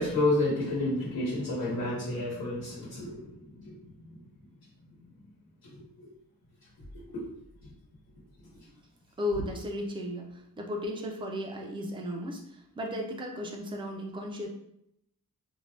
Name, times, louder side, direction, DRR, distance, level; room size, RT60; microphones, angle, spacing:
voice 1, 0.0-3.7 5.7-6.1 7.1-7.2 9.3-9.4, left 2 dB, 85° left, -9 dB, 1.1 m, -30 dB
voice 2, 9.2-14.5, left 1 dB, 15° right, 1 dB, 0.3 m, -35 dB
2.6 x 2.1 x 3.2 m, 0.76 s
wide cardioid pair, 155°, 35 cm